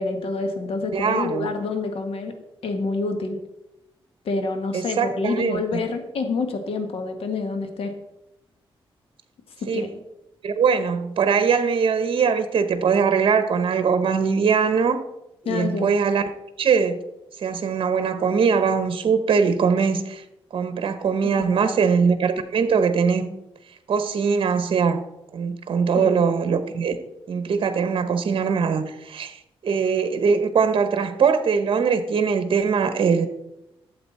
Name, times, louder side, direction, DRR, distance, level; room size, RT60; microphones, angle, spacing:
voice 1, 0.0-2.3 2.6-3.4 4.2-7.9 9.6-9.9 15.4-15.9 21.2-21.8 25.9-26.1, left 3 dB, 75° left, 6 dB, 1.6 m, -27 dB
voice 2, 0.9-1.5 4.7-5.6 9.7-9.9 10.4-15.0 15.5-16.2 16.6-17.0 17.4-20.2 20.5-23.3 23.9-25.0 25.3-27.0 27.3-33.3, right 6 dB, 60° right, 10 dB, 0.9 m, -21 dB
12.5 x 7.8 x 4.2 m, 0.89 s
cardioid pair, 95°, 10 cm